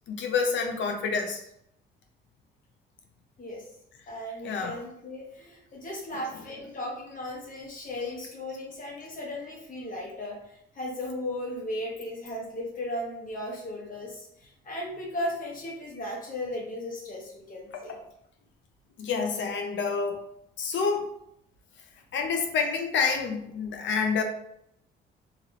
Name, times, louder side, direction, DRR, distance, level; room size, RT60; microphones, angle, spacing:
voice 1, 0.1-1.4 4.4-4.7 19.0-20.2 20.6-21.1 22.1-24.2, left 5 dB, 70° left, 4 dB, 0.6 m, -28 dB
voice 2, 4.1-18.0, left 1 dB, 45° left, -3 dB, 1.1 m, -36 dB
3.0 x 2.4 x 2.9 m, 0.76 s
cardioid pair, 90°, 20 cm